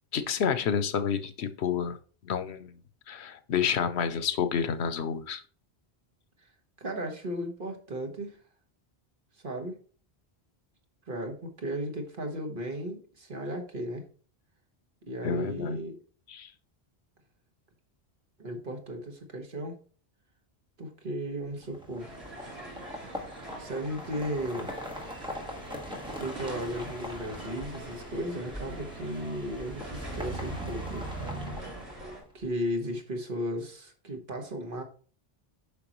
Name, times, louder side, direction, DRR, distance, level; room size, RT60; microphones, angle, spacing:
voice 1, 0.1-2.0 2.2-2.8 3.1-5.4 15.2-15.8 16.3-16.5, left 7 dB, 85° left, 11 dB, 1.0 m, -29 dB
voice 2, 6.8-8.4 9.3-9.8 11.1-14.0 15.0-15.9 18.4-19.8 20.8-22.1 22.8-24.7 26.1-31.1 32.3-34.8, equal, 55° right, 3 dB, 1.6 m, -35 dB
sound 1, 21.6-32.5, equal, 5° right, 1.6 m, -40 dB
sound 2, 22.0-32.2, right 1 dB, 85° right, 3.2 m, -45 dB
8.6 x 5.9 x 3.0 m, 0.41 s
omnidirectional pair, 1.1 m